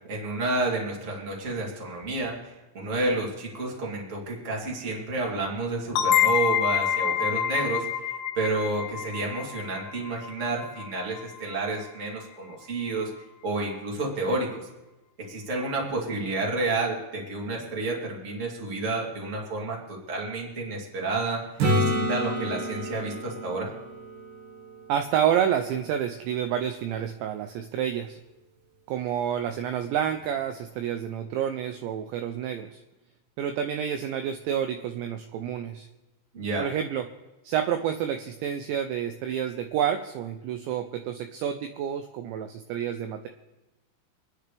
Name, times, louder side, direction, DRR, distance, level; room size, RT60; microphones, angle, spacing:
voice 1, 0.1-8.0 8.3-13.1 13.4-14.7 15.3-21.4 21.7-23.7 36.3-36.7, right 2 dB, 20° right, -3 dB, 2.2 m, -30 dB
sound 1, 6.0-11.4, left 9 dB, 75° left, 2.6 m, -27 dB
Acoustic guitar / Strum, 21.6-25.4 30.2-30.3, equal, 60° right, 2.4 m, -29 dB
voice 2, 24.9-28.2 28.9-32.8 33.4-35.9 36.6-37.0 37.4-43.3, right 9 dB, 80° right, 7 dB, 2.7 m, -29 dB
28.0 x 9.8 x 3.4 m, 1.1 s
omnidirectional pair, 5.6 m